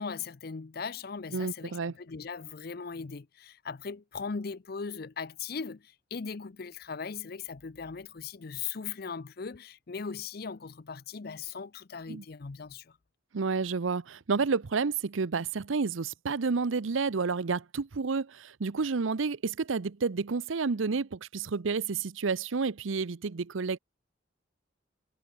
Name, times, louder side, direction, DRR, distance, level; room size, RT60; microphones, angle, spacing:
voice 1, 0.0-13.0, left 5 dB, 50° left, 0.6 m, -39 dB
voice 2, 1.3-1.9 12.1-12.2 13.3-23.8, right 4 dB, 90° right, 0.7 m, -30 dB
head